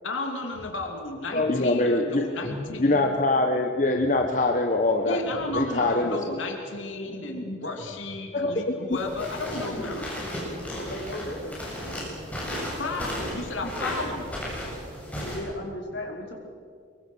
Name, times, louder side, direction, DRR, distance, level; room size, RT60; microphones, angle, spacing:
voice 1, 0.0-3.1 5.1-10.0 12.8-14.4, left 2 dB, 85° left, 2 dB, 2.7 m, -33 dB
voice 2, 1.3-2.2 2.8-5.2 5.5-6.4 8.3-8.7, left 2 dB, 40° left, 3 dB, 1.3 m, -23 dB
voice 3, 2.4-2.9 3.9-4.2 5.1-5.6 6.2-6.3 6.6-6.7 7.0-7.7 8.3-8.5 9.7-9.9 10.6-11.6 13.6-14.7 15.0-16.3, left 1 dB, 60° left, -1 dB, 5.1 m, -39 dB
sound 1, 8.9-15.4, equal, 10° left, 7.4 m, -34 dB
25.0 x 22.5 x 6.3 m, 2.2 s
head